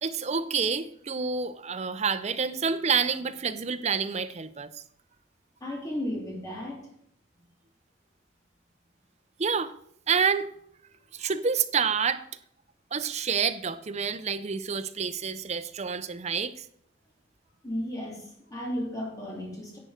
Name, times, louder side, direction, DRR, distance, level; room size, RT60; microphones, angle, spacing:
voice 1, 0.0-4.7 9.4-9.7 10.1-10.5 11.1-12.2 12.9-16.7, right 6 dB, 35° right, 12 dB, 0.6 m, -28 dB
voice 2, 5.6-6.9 11.2-11.3 17.6-19.8, left 1 dB, 20° left, -2 dB, 3.0 m, -34 dB
11.0 x 7.8 x 5.0 m, 0.70 s
head